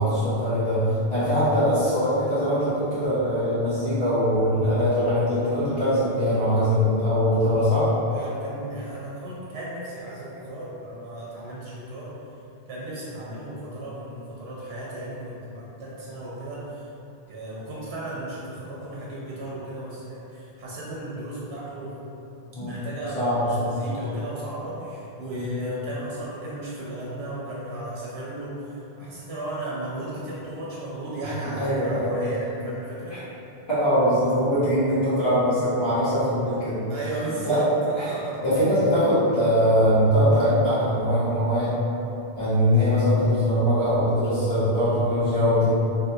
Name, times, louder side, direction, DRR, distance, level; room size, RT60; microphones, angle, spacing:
voice 1, 0.0-7.9 22.5-22.8 23.2-23.8 25.3-25.4 31.6-32.1 33.7-36.8 37.5-37.6 38.4-41.7 42.4-45.7, equal, 70° left, -14 dB, 1.7 m, -22 dB
voice 2, 8.1-12.1 12.7-16.9 17.3-22.0 22.6-33.2 36.9-38.5 44.7-45.1, right 1 dB, 85° right, -6 dB, 0.9 m, -35 dB
3.6 x 2.7 x 2.3 m, 2.8 s
omnidirectional pair, 1.0 m